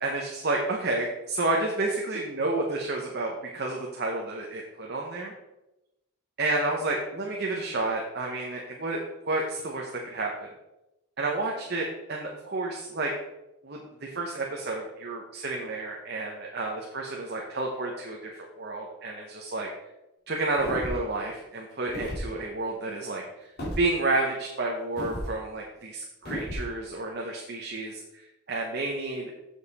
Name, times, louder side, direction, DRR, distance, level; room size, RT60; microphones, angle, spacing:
voice 1, 0.0-5.3 6.4-10.5 11.2-13.1 13.6-19.7 20.3-23.5 23.8-29.3, right 2 dB, 50° right, 0 dB, 0.9 m, -30 dB
sound 1, 20.6-21.1 21.9-22.3 23.6-23.8 25.0-25.3 26.3-26.7, equal, 45° left, 2.7 m, -33 dB
7.7 x 6.5 x 4.1 m, 0.96 s
head